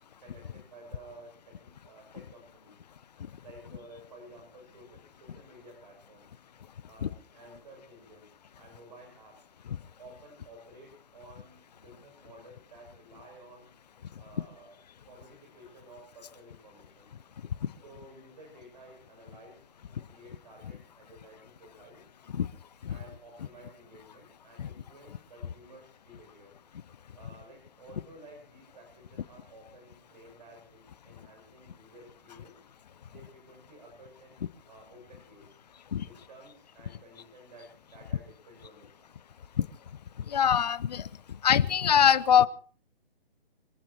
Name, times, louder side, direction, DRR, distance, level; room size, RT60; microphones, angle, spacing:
voice 1, 0.2-2.8 3.4-6.3 6.9-8.3 8.5-9.5 10.0-13.7 14.2-14.8 15.1-17.1 17.8-19.6 19.9-22.0 22.9-26.5 27.1-32.6 33.1-35.5 36.0-39.1, right 1 dB, 45° right, 2 dB, 7.4 m, -53 dB
voice 2, 40.3-41.1 41.4-42.5, left 8 dB, 45° left, 19 dB, 0.7 m, -23 dB
26.5 x 16.5 x 3.1 m, 0.42 s
figure-of-eight pair, 140°, 30 cm